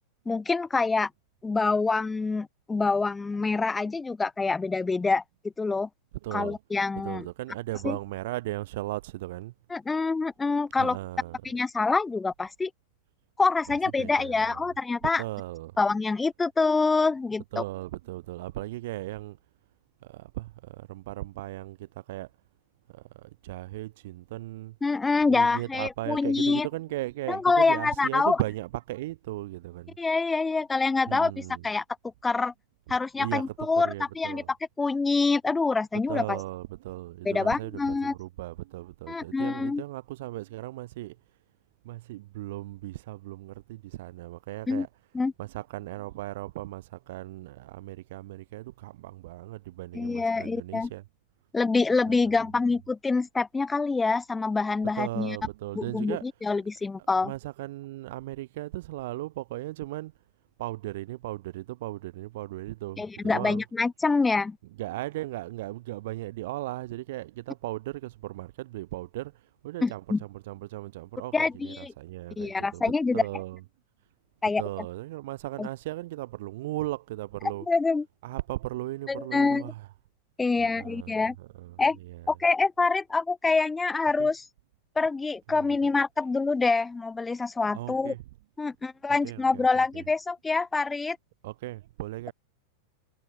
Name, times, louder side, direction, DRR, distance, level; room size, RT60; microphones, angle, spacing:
voice 1, 0.3-1.1 1.4-5.2 5.6-5.9 6.3-7.3 7.8-8.0 9.7-11.0 11.4-12.7 13.4-15.2 15.8-17.6 24.8-26.7 27.3-28.4 30.0-31.3 31.6-31.8 32.2-32.5 32.9-36.4 37.3-38.1 39.1-39.8 44.7-44.9 45.1-45.3 49.9-50.9 51.5-55.4 55.8-57.3 63.0-64.6 69.8-70.2 71.3-71.9 72.4-73.2 74.4-74.9 75.6-75.7 77.7-78.1 79.1-79.6 80.4-81.4 81.8-82.0 82.3-84.4 85.0-88.1 88.6-91.2, left 4 dB, 10° left, 2.1 m, -26 dB
voice 2, 6.2-6.6 7.0-9.5 10.8-11.4 14.0-14.6 15.0-15.8 17.5-19.4 20.0-22.3 22.9-24.8 25.3-30.0 31.1-31.6 33.2-34.5 36.1-41.2 41.8-44.9 45.4-51.0 52.1-52.3 54.9-56.2 57.2-60.1 60.6-63.6 64.8-72.8 73.1-73.6 74.6-77.7 78.2-79.9 80.6-82.3 84.2-84.3 85.5-85.8 87.7-88.2 89.2-90.0 91.4-92.3, right 17 dB, 55° right, 7.6 m, -37 dB
figure-of-eight pair, 90°, 0 cm